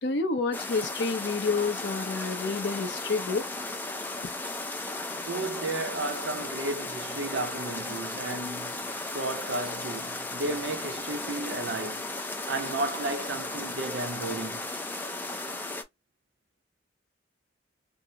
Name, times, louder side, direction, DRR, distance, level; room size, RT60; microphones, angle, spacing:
voice 1, 0.0-3.4, left 4 dB, 65° left, 0.7 m, -29 dB
sound 1, 0.5-15.8, left 2 dB, 10° left, 0.4 m, -35 dB
voice 2, 5.2-12.1 12.5-14.6, right 2 dB, 65° right, 0.7 m, -33 dB
3.6 x 2.0 x 2.8 m
head